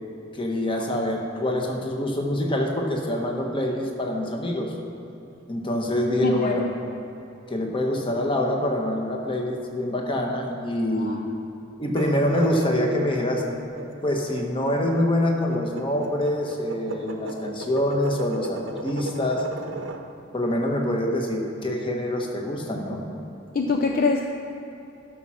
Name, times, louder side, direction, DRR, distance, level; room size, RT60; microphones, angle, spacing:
voice 1, 0.3-4.7 5.5-6.7 7.5-11.2 11.8-13.4 14.0-19.4 20.3-23.1, left 1 dB, 25° left, 1 dB, 1.2 m, -25 dB
voice 2, 6.2-6.6 10.9-11.2 23.5-24.2, left 4 dB, 45° left, 3 dB, 0.5 m, -23 dB
sound 1, 11.8-20.0, right 2 dB, 70° right, 0.8 m, -36 dB
12.0 x 6.3 x 5.8 m, 3.0 s
head